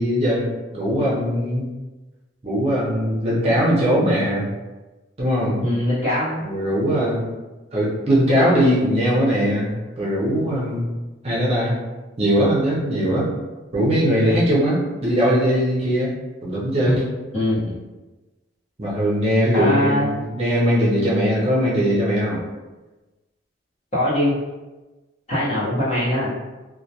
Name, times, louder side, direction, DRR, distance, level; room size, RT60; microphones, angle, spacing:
voice 1, 0.0-1.7 2.4-4.5 5.2-5.6 6.4-7.3 7.7-10.9 11.2-11.8 12.2-13.3 13.7-16.1 16.4-17.0 18.8-22.4, equal, 30° right, -6 dB, 0.6 m, -20 dB
voice 2, 5.6-6.5 16.8-16.9 17.3-17.8 19.5-20.2 23.9-24.4 25.3-26.3, left 1 dB, 35° left, -9 dB, 0.8 m, -21 dB
2.1 x 2.1 x 2.7 m, 1.2 s
head